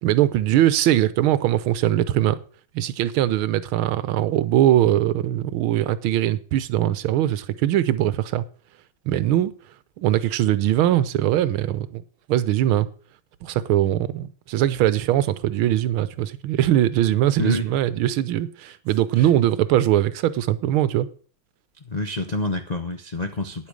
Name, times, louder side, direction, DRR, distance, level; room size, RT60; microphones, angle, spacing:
voice 1, 0.0-2.4 2.7-8.4 9.1-9.5 10.0-12.0 12.3-12.9 13.4-21.1, right 12 dB, 85° right, 1.6 m, -21 dB
voice 2, 21.8-23.7, left 2 dB, 80° left, 0.3 m, -28 dB
9.9 x 8.7 x 6.3 m
omnidirectional pair, 2.2 m